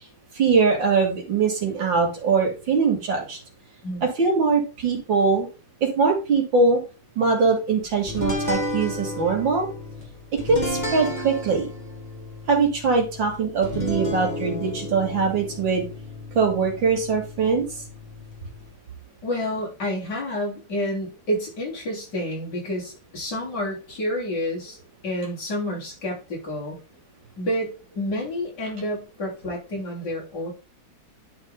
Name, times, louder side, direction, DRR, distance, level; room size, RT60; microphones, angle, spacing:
voice 1, 0.3-3.4 4.0-5.5 5.8-6.8 7.2-9.7 10.3-11.7 12.5-15.8 16.3-17.7, right 4 dB, 80° right, 1 dB, 3.0 m, -22 dB
sound 1, 8.1-18.7, left 1 dB, 25° left, 2.3 m, -32 dB
voice 2, 19.2-24.8 25.0-26.8 27.4-30.5, left 1 dB, 60° left, -4 dB, 4.0 m, -29 dB
11.0 x 4.3 x 3.7 m, 0.31 s
omnidirectional pair, 2.0 m